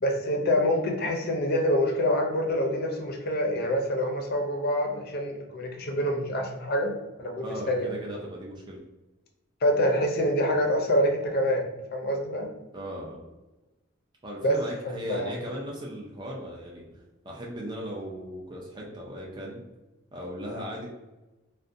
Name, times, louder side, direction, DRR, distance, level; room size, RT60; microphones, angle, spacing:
voice 1, 0.0-7.9 9.6-11.7 11.9-12.5 14.4-14.5 14.9-15.3, equal, 50° left, 2 dB, 0.5 m, -26 dB
voice 2, 7.4-8.8 12.7-13.2 14.2-19.6 20.1-20.9, equal, 20° right, -3 dB, 0.4 m, -37 dB
2.5 x 2.1 x 2.5 m, 1.1 s
head